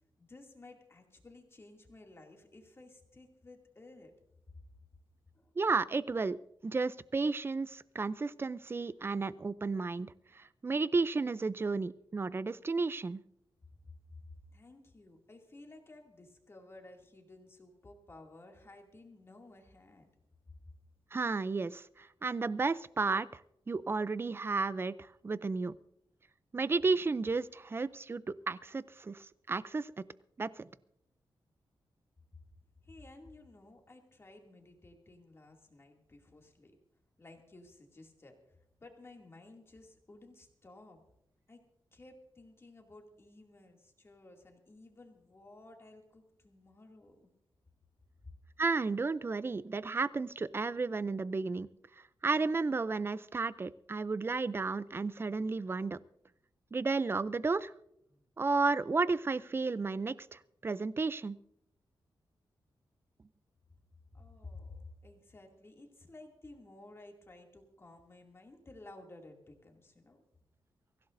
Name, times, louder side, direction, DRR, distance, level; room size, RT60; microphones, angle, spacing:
voice 1, 0.2-4.1 5.3-5.5 14.5-20.1 32.8-36.8 37.2-41.0 41.5-41.6 41.9-47.3 58.1-58.2 64.1-70.2, left 2 dB, 30° left, 2 dB, 2.5 m, -55 dB
voice 2, 5.6-6.4 6.6-13.2 21.1-23.4 23.7-24.9 25.2-25.7 26.5-29.9 30.4-30.7 48.6-51.7 52.2-56.0 56.7-57.7 58.4-61.4, right 4 dB, 25° right, 16 dB, 0.4 m, -33 dB
24.0 x 15.5 x 2.6 m, 0.77 s
wide cardioid pair, 130°, 9 cm